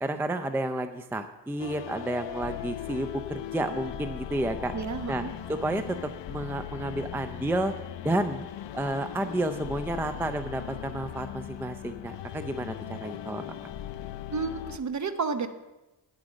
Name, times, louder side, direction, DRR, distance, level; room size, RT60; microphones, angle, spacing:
voice 1, 0.0-4.7 5.1-5.2 5.5-7.7 8.0-8.5 8.7-13.7, right 1 dB, 5° right, 8 dB, 0.5 m, -31 dB
sound 1, 1.6-14.8, left 11 dB, 85° left, 0.6 m, -39 dB
voice 2, 4.7-5.3 14.3-15.5, right 4 dB, 45° right, 9 dB, 0.9 m, -31 dB
10.0 x 7.8 x 6.2 m, 1.0 s
wide cardioid pair, 115°, 42 cm